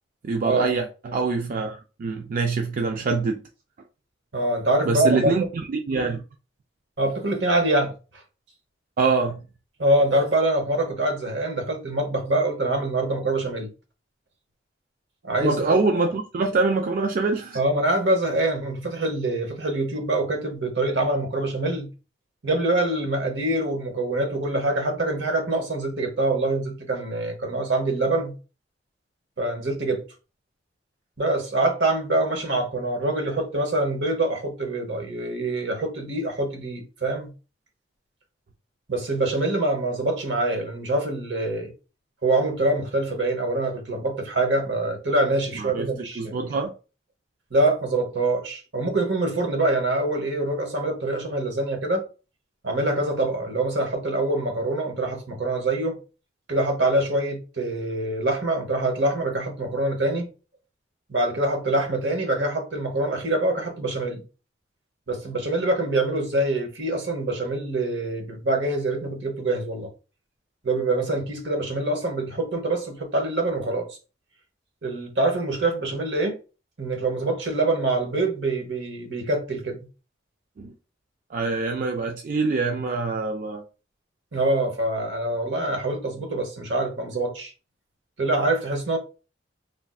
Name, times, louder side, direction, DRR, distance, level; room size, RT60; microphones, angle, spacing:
voice 1, 0.2-3.4 4.9-5.5 5.7-6.2 9.0-9.4 15.4-17.6 45.6-45.9 46.2-46.7 80.6-80.7 81.3-83.6, right 4 dB, 50° right, 0.3 m, -24 dB
voice 2, 4.3-5.5 7.0-7.9 9.8-13.7 15.2-15.8 17.5-21.9 22.4-28.3 29.4-30.0 31.2-37.3 38.9-41.7 42.2-46.5 47.5-52.0 52.6-56.0 56.5-60.3 61.1-64.2 65.1-69.9 70.6-73.9 74.8-76.4 76.8-79.8 84.3-87.5 88.2-89.0, right 2 dB, 70° right, 0.9 m, -25 dB
3.2 x 2.6 x 2.3 m
head